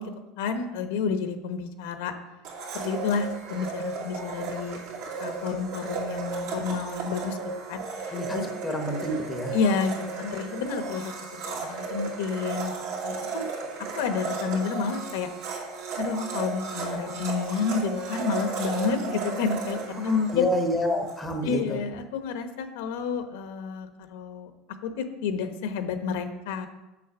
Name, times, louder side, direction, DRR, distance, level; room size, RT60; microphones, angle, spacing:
voice 1, 0.0-2.1 2.7-4.8 5.2-7.4 7.7-8.4 9.5-12.7 13.0-13.5 13.9-15.3 16.0-20.5 21.4-24.5 24.8-26.7, left 5 dB, 80° left, 8 dB, 1.0 m, -30 dB
Domestic sounds home sounds, 2.4-21.2, right 4 dB, 60° right, 2.4 m, -34 dB
voice 2, 8.1-9.6 20.1-21.8, left 1 dB, 5° left, 3 dB, 0.9 m, -28 dB
7.3 x 7.0 x 6.0 m, 1.0 s
cardioid pair, 180°, 0 cm